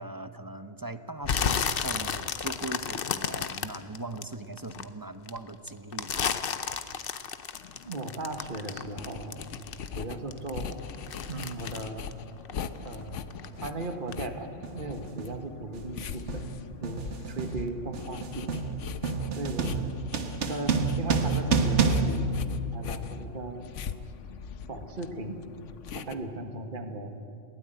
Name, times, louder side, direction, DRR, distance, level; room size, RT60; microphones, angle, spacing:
voice 1, 0.0-6.3, right 2 dB, 25° right, 10 dB, 0.6 m, -40 dB
sound 1, 1.2-4.8 5.3-10.0 10.3-13.0 13.3-13.7 14.1-14.2, left 7 dB, 55° left, 1.0 m, -32 dB
sound 2, 7.5-26.1, left 7 dB, 75° left, 1.1 m, -42 dB
voice 2, 7.8-9.4 9.9-10.8 11.3-12.1 12.7-13.2 13.6-16.5 16.8-18.5 19.3-19.9 20.5-22.3 22.7-23.7 24.7-25.4 25.9-27.2, right 2 dB, 45° right, 6 dB, 1.7 m, -37 dB
sound 3, 13.0-13.2 14.1-14.4 14.6-23.2, right 4 dB, 70° right, 1.7 m, -29 dB
22.0 x 17.0 x 9.1 m, 2.4 s
omnidirectional pair, 1.3 m